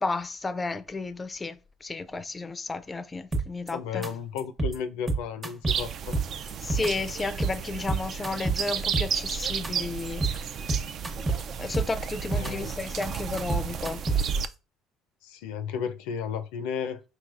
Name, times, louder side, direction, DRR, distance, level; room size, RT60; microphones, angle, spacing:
voice 1, 0.0-4.0 6.6-10.5 11.6-14.0, left 3 dB, 20° left, 0.4 m, -33 dB
sound 1, 3.3-3.7 4.0-4.1 4.4-4.8 5.1-5.8 6.1-6.9 7.2-7.6 7.9-9.3 9.6-9.7 10.0-10.4 10.7-11.4 11.7-12.5 12.8-14.3, right 3 dB, 20° right, 0.8 m, -28 dB
voice 2, 3.7-6.2 12.3-12.7 15.2-17.0, left 7 dB, 85° left, 0.4 m, -33 dB
sound 2, 5.7-14.5, right 7 dB, 50° right, 0.3 m, -33 dB
4.1 x 3.2 x 2.4 m
supercardioid pair, 90°, 0 cm